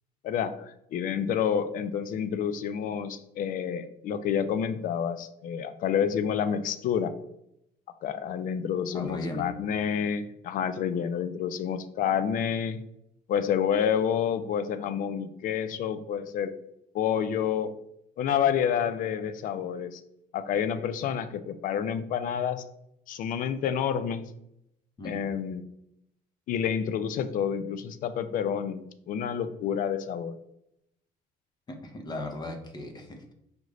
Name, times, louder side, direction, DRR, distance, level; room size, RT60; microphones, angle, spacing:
voice 1, 0.2-7.1 8.0-12.8 13.3-16.5 16.9-17.7 18.2-20.0 20.3-22.6 23.1-24.3 25.0-25.6 26.5-30.4, left 8 dB, 60° left, 11 dB, 0.4 m, -29 dB
voice 2, 8.9-9.5 25.0-25.3 31.7-33.3, left 2 dB, 25° left, 4 dB, 0.7 m, -37 dB
5.0 x 2.5 x 3.1 m, 0.79 s
cardioid pair, 115°, 16 cm